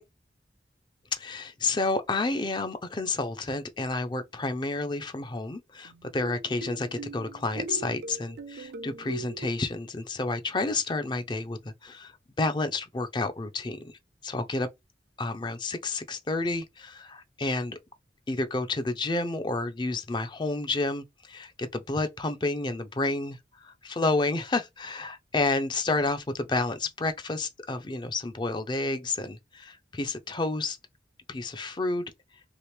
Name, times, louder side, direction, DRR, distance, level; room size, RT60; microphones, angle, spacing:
voice 1, 1.1-14.7 15.2-17.8 18.3-30.8 31.3-32.0, left 3 dB, 25° left, 0.4 m, -30 dB
sound 1, 5.8-9.5, right 4 dB, 65° right, 0.4 m, -41 dB
3.0 x 2.8 x 3.2 m
head